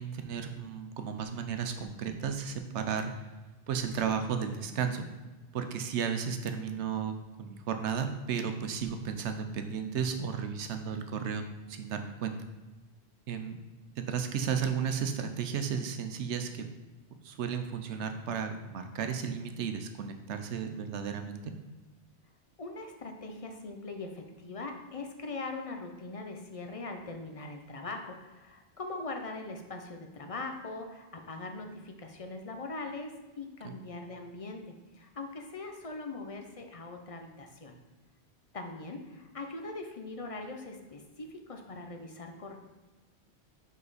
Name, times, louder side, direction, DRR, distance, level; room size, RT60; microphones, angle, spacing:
voice 1, 0.0-3.1 3.7-5.0 5.5-11.4 11.7-12.4 13.3-13.6 14.0-16.6 17.2-21.5 33.6-33.7, right 7 dB, 85° right, 7 dB, 1.0 m, -34 dB
voice 2, 22.6-37.7 38.5-42.6, left 3 dB, 40° left, 4 dB, 0.6 m, -41 dB
5.5 x 5.2 x 4.0 m, 1.2 s
omnidirectional pair, 1.1 m